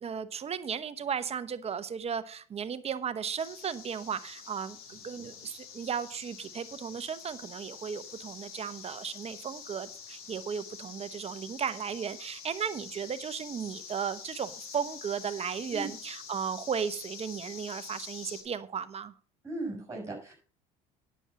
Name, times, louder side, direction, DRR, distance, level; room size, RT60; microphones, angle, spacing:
voice 1, 0.0-19.1, right 7 dB, 35° right, 0.9 m, -35 dB
sound 1, 3.4-18.4, left 7 dB, 80° left, 2.6 m, -46 dB
voice 2, 19.4-20.3, right 2 dB, 15° right, 6.1 m, -37 dB
9.9 x 7.1 x 5.9 m
hypercardioid pair, 75°, 18 cm